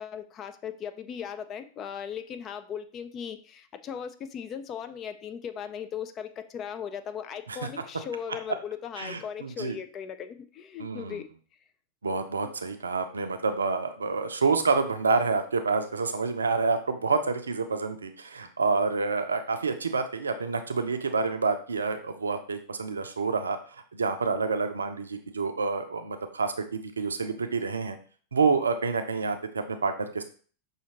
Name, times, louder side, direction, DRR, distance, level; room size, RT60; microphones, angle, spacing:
voice 1, 0.0-11.2, left 8 dB, 30° left, 9 dB, 0.4 m, -38 dB
voice 2, 9.0-9.8 10.8-11.2 12.0-23.6 23.9-28.0 28.3-30.2, right 4 dB, 75° right, 8 dB, 0.5 m, -28 dB
5.7 x 2.8 x 2.8 m, 0.42 s
figure-of-eight pair, 90°, 0 cm